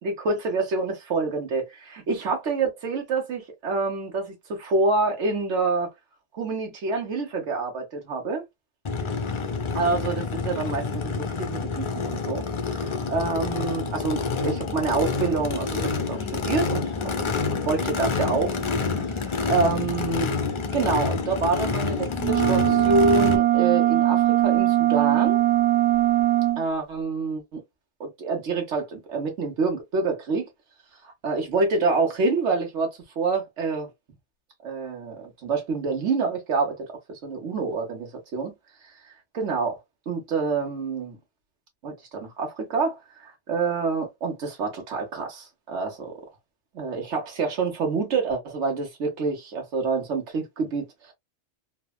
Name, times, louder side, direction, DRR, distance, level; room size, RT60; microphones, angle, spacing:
voice 1, 0.0-5.9 6.3-8.4 9.7-12.4 13.1-17.3 17.7-18.6 19.2-20.3 20.7-25.4 26.6-27.6 28.0-30.5 31.2-33.9 34.6-38.5 39.3-39.8 40.1-41.2 41.8-43.0 43.5-46.2 46.7-51.1, right 4 dB, 85° right, 1.3 m, -27 dB
Race car auto racing / Idling / Accelerating revving vroom, 8.8-23.4, left 4 dB, 50° left, 0.3 m, -28 dB
sound 1, 22.2-26.6, right 15 dB, 55° right, 0.5 m, -20 dB
3.3 x 2.2 x 2.2 m
omnidirectional pair, 1.2 m